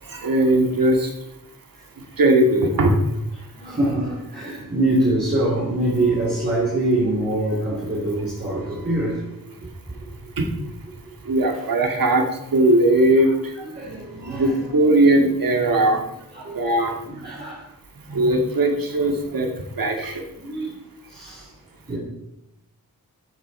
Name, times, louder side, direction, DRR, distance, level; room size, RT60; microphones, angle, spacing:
voice 1, 0.0-1.1 2.2-3.0 10.4-10.5 11.2-13.5 14.3-16.0 16.5-16.9 18.1-20.2, right 1 dB, 60° right, 3 dB, 2.2 m, -19 dB
voice 2, 3.6-9.2 13.6-14.5 15.6-15.7 16.3-16.6 17.0-17.6 20.4-20.7 21.1-21.4 21.9-22.0, right 1 dB, 25° right, -7 dB, 3.6 m, -24 dB
14.0 x 8.3 x 4.4 m, 0.86 s
wide cardioid pair, 140°, 38 cm